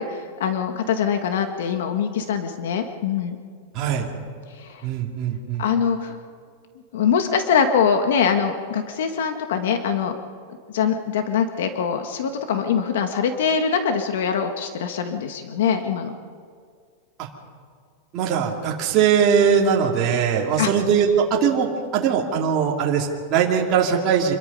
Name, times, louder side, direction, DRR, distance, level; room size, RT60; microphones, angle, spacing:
voice 1, 0.0-3.4 4.5-4.8 5.6-6.1 6.9-10.1 10.7-16.1 20.6-20.7, left 7 dB, 75° left, 6 dB, 1.7 m, -23 dB
voice 2, 3.7-4.1 4.8-5.6 17.2-17.3 18.1-21.7 21.9-24.3, right 7 dB, 30° right, -2 dB, 2.6 m, -20 dB
26.5 x 22.0 x 5.5 m, 2.1 s
supercardioid pair, 175°, 0 cm